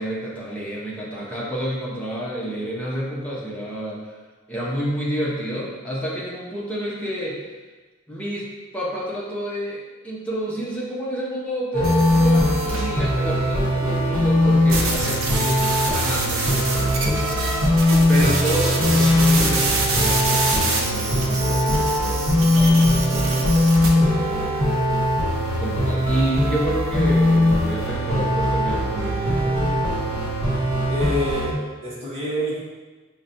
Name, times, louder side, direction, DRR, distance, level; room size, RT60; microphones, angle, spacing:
voice 1, 0.0-4.2 4.5-7.4 8.1-17.5 18.1-25.0 25.6-29.8, right 1 dB, 5° left, -7 dB, 0.7 m, -29 dB
sound 1, 11.7-31.5, left 1 dB, 90° right, 0.9 m, -20 dB
sound 2, 11.8-12.9 14.7-23.9, right 3 dB, 70° right, 0.6 m, -26 dB
voice 2, 17.9-18.3 30.9-32.6, equal, 30° right, -7 dB, 1.0 m, -28 dB
5.8 x 2.2 x 2.6 m, 1.3 s
head